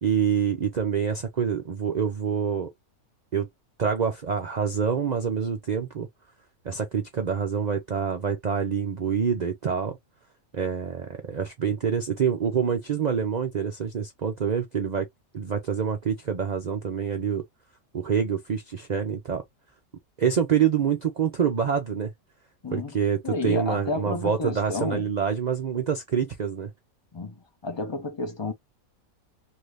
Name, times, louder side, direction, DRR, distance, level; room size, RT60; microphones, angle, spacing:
voice 1, 0.0-2.7 3.3-3.5 3.8-6.1 6.6-10.0 10.5-15.1 15.3-17.4 17.9-19.4 20.2-22.1 22.7-26.7, right 7 dB, 65° right, 0.4 m, -26 dB
voice 2, 22.6-23.0 23.2-25.1 27.1-28.5, left 3 dB, 45° left, 0.3 m, -31 dB
2.7 x 2.5 x 3.1 m
omnidirectional pair, 1.5 m